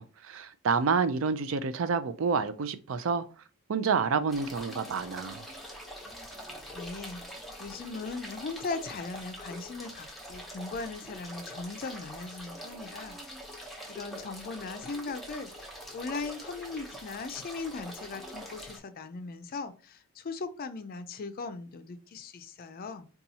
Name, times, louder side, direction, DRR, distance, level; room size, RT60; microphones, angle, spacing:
voice 1, 0.0-3.2 3.7-5.5, right 5 dB, 65° right, 0.4 m, -28 dB
sound 1, 4.3-18.8, equal, ahead, 0.7 m, -44 dB
voice 2, 6.7-7.2 7.6-13.2 13.5-15.5 15.9-23.1, left 4 dB, 45° left, 0.4 m, -39 dB
4.1 x 2.3 x 2.7 m
head